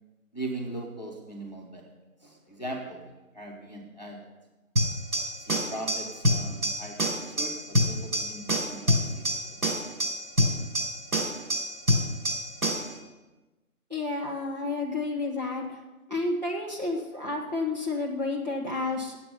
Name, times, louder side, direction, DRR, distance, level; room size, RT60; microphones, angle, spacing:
voice 1, 0.3-1.9 2.2-4.3 5.4-9.6 9.8-9.9, right 2 dB, 30° left, -1 dB, 1.2 m, -40 dB
sound 1, 4.8-13.0, left 1 dB, 80° right, 3.8 m, -27 dB
voice 2, 13.9-15.8 16.1-19.2, left 3 dB, 30° right, -3 dB, 1.3 m, -30 dB
9.4 x 7.8 x 6.8 m, 1.1 s
figure-of-eight pair, 175°, 44 cm